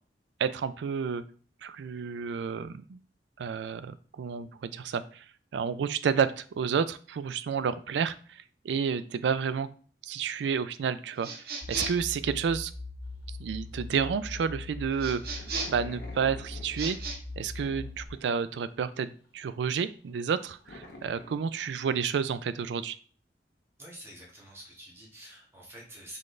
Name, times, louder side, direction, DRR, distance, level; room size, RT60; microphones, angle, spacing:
voice 1, 0.4-1.2 1.6-3.0 3.4-5.3 5.5-9.7 10.0-12.7 13.3-23.0, right 6 dB, 75° right, 15 dB, 0.3 m, -31 dB
sound 1, 11.2-12.1 15.0-15.9 16.7-17.2, right 4 dB, 60° right, 0.9 m, -35 dB
sound 2, 11.6-18.1, left 3 dB, 35° left, 0.6 m, -41 dB
sound 3, 13.1-13.4 13.7-17.1 17.5-18.8 19.0-21.8, left 1 dB, 65° left, 1.0 m, -49 dB
voice 2, 23.8-26.2, right 1 dB, 15° right, -4 dB, 1.4 m, -47 dB
4.0 x 3.7 x 3.2 m, 0.42 s
head